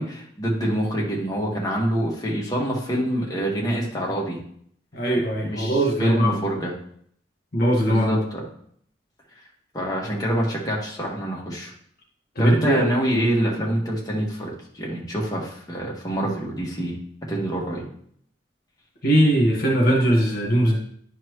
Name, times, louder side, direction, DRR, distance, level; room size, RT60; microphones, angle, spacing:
voice 1, 0.0-4.4 5.4-6.7 7.9-8.4 9.7-11.7 12.4-17.0 17.3-17.8, right 1 dB, 20° left, -3 dB, 1.7 m, -25 dB
voice 2, 4.9-6.3 7.5-8.2 12.4-12.8 19.0-20.8, right 1 dB, 60° left, -1 dB, 1.7 m, -20 dB
11.0 x 4.5 x 3.2 m, 0.63 s
head